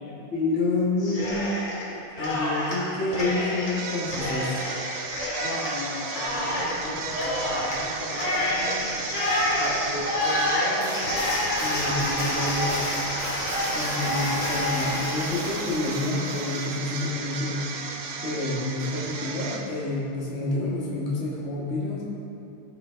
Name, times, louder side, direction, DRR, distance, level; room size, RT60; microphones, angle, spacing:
voice 1, 0.3-1.4 2.2-4.5 11.6-12.8 13.7-17.6 18.2-22.0, left 2 dB, 35° left, -7 dB, 1.8 m, -28 dB
Cheering, 1.0-1.8 2.1-16.6, left 1 dB, 60° left, 2.4 m, -28 dB
sound 1, 3.6-20.0, right 5 dB, 80° right, 1.6 m, -35 dB
voice 2, 5.4-9.0 9.5-11.1, left 1 dB, 80° left, -6 dB, 2.7 m, -36 dB
15.5 x 5.2 x 3.4 m, 2.8 s
omnidirectional pair, 2.3 m